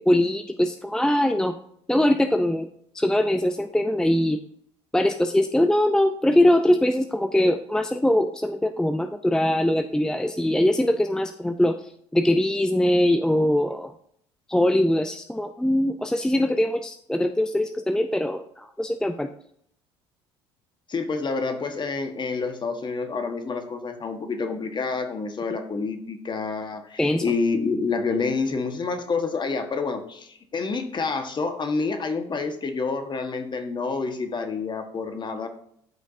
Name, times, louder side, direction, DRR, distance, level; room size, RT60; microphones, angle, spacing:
voice 1, 0.0-1.6 1.9-2.7 2.9-4.4 4.9-11.8 12.1-13.9 14.5-19.3 27.0-27.2, left 1 dB, 5° left, 9 dB, 0.5 m, -22 dB
voice 2, 20.9-35.5, left 4 dB, 35° left, 7 dB, 1.4 m, -28 dB
12.0 x 5.2 x 2.7 m, 0.68 s
hypercardioid pair, 70°, 14 cm